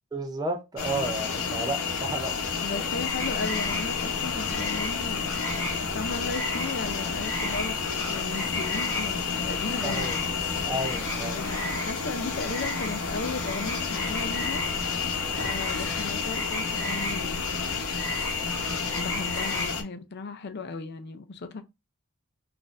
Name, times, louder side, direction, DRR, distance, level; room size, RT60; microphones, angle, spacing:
voice 1, 0.1-2.9 9.8-10.2 10.6-11.4 15.3-15.6, right 1 dB, 20° right, 0.5 m, -33 dB
sound 1, 0.8-19.8, left 5 dB, 80° left, 0.8 m, -30 dB
voice 2, 2.6-5.5 5.9-10.1 11.3-14.6 15.4-17.9 19.0-21.6, left 4 dB, 55° left, 0.5 m, -36 dB
sound 2, 3.1-19.7, equal, 10° left, 0.9 m, -36 dB
4.0 x 2.5 x 2.4 m
head